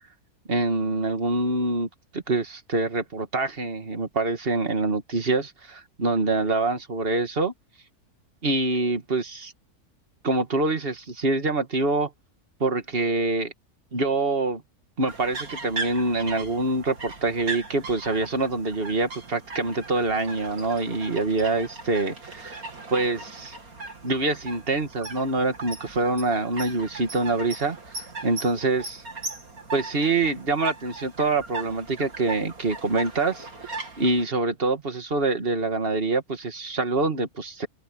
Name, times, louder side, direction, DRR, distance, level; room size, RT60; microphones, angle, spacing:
voice 1, 0.5-7.5 8.4-9.5 10.2-12.1 12.6-13.5 13.9-14.6 15.0-22.6 22.9-23.6 24.0-27.8 28.2-29.0 29.7-37.7, right 3 dB, 40° right, 2.2 m, -25 dB
sound 1, 15.1-34.2, right 3 dB, 70° right, 3.7 m, -38 dB
open air
omnidirectional pair, 1.6 m